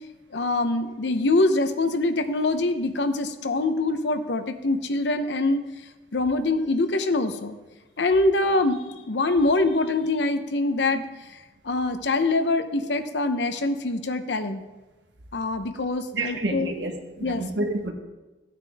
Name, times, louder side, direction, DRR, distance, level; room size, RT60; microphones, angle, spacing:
voice 1, 0.3-5.6 6.1-7.5 8.0-11.0 11.6-14.7 15.3-16.7 17.2-17.4, left 2 dB, 80° left, 9 dB, 0.8 m, -24 dB
voice 2, 16.1-17.9, right 2 dB, 85° right, 3 dB, 1.4 m, -29 dB
15.0 x 8.8 x 3.5 m, 1.2 s
head